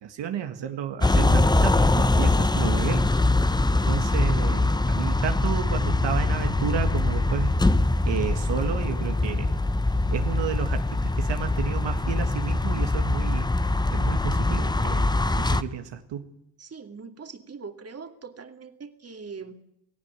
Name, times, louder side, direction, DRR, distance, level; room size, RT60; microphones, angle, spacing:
voice 1, 0.0-3.1 3.9-7.6 8.0-9.5 10.1-13.5 13.9-16.3, right 9 dB, 70° right, 6 dB, 1.8 m, -32 dB
sound 1, 1.0-15.6, left 2 dB, 10° left, 0.9 m, -23 dB
sound 2, 3.7-8.9, left 6 dB, 55° left, 3.1 m, -50 dB
voice 2, 16.6-19.6, right 5 dB, 35° right, 7 dB, 2.5 m, -41 dB
17.5 x 17.5 x 9.6 m, 0.75 s
cardioid pair, 90°, 44 cm